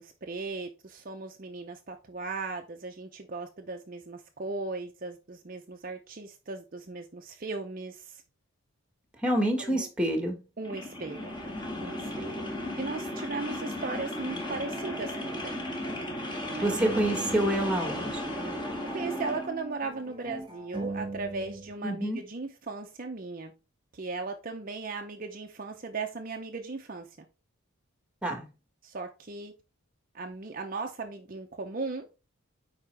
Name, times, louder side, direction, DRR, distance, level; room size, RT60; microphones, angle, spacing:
voice 1, 0.0-8.2 9.3-9.9 10.6-11.4 11.8-12.5 12.8-15.6 16.5-16.7 18.9-23.5 23.9-27.2 28.8-29.5 30.1-32.1, right 3 dB, 40° right, 0.6 m, -37 dB
voice 2, 9.2-10.4 16.6-18.2 21.8-22.2 28.2-28.5, right 1 dB, 5° right, 1.4 m, -27 dB
sound 1, 10.6-19.5, left 1 dB, 20° left, 1.8 m, -35 dB
sound 2, 13.7-17.6 17.9-21.7, right 2 dB, 20° right, 1.2 m, -40 dB
8.3 x 4.9 x 3.4 m
head